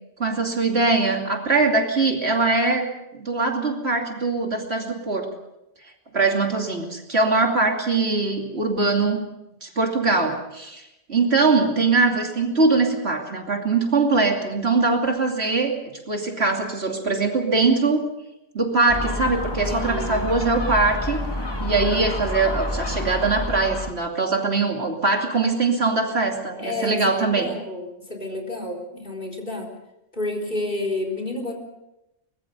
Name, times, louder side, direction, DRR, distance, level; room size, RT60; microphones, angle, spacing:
voice 1, 0.2-5.3 6.1-9.2 9.6-10.8 11.1-15.7 16.1-18.0 18.5-21.2 21.6-27.5, right 3 dB, 60° right, 2 dB, 3.0 m, -22 dB
Gull seagull, 18.9-23.9, left 1 dB, 20° left, 1.7 m, -28 dB
voice 2, 19.6-20.2 26.6-29.7 30.1-31.5, left 2 dB, 40° left, 3 dB, 4.1 m, -30 dB
24.0 x 20.5 x 5.4 m, 0.91 s
omnidirectional pair, 1.3 m